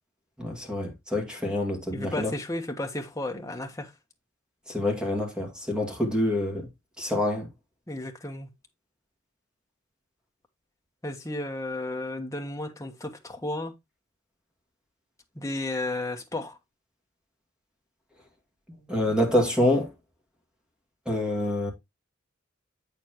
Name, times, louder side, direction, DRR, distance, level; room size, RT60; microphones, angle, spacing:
voice 1, 0.4-2.3 4.7-6.7 7.0-7.5 18.9-19.9 21.1-21.7, left 1 dB, 5° right, 2.2 m, -26 dB
voice 2, 1.9-3.9 7.9-8.5 11.0-13.7 15.3-16.6, left 2 dB, 15° left, 1.2 m, -33 dB
8.1 x 6.9 x 3.0 m
head